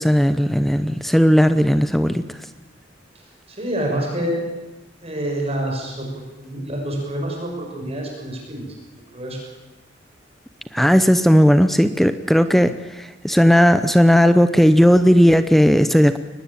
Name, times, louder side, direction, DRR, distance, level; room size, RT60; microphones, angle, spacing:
voice 1, 0.0-2.2 10.7-16.2, equal, ahead, 11 dB, 0.7 m, -15 dB
voice 2, 3.5-4.4 5.0-8.6 9.1-9.4, right 1 dB, 35° right, 0 dB, 6.4 m, -27 dB
23.0 x 20.0 x 8.8 m, 1.1 s
head